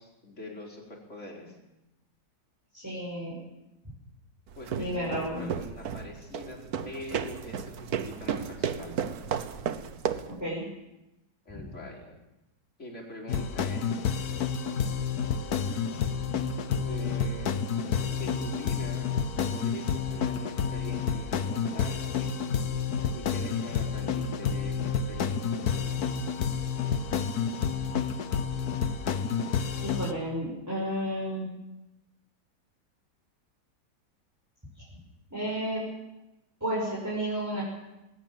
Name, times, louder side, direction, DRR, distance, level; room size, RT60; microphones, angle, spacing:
voice 1, 0.0-1.6 4.5-9.0 11.4-12.2 12.8-14.0 16.8-17.6 18.1-19.1 19.5-22.3 23.1-25.5, left 1 dB, 40° left, -1 dB, 4.8 m, -43 dB
voice 2, 2.7-3.3 4.7-5.5 10.4-10.6 29.8-31.5 34.8-34.9 35.3-35.8 36.6-37.6, equal, 10° right, -5 dB, 6.2 m, -32 dB
sound 1, 4.5-10.4, right 7 dB, 60° right, 1.4 m, -33 dB
sound 2, 13.3-30.1, left 6 dB, 60° left, 1.5 m, -29 dB
20.5 x 18.5 x 7.5 m, 0.95 s
omnidirectional pair, 1.9 m